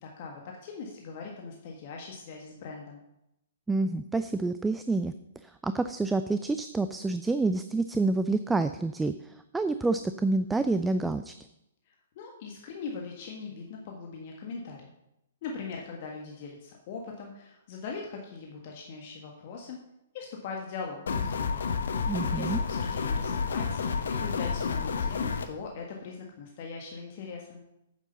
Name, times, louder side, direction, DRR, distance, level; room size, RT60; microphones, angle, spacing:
voice 1, 0.0-3.0 11.9-14.9 15.4-19.8 20.1-21.7 22.2-27.6, left 5 dB, 45° left, 0 dB, 1.6 m, -41 dB
voice 2, 3.7-5.1 5.4-9.1 9.5-11.3 22.1-22.6, right 3 dB, 5° right, 10 dB, 0.4 m, -28 dB
sound 1, 21.1-25.5, left 5 dB, 60° left, 1.1 m, -30 dB
9.0 x 7.4 x 6.8 m, 0.86 s
figure-of-eight pair, 115°, 0 cm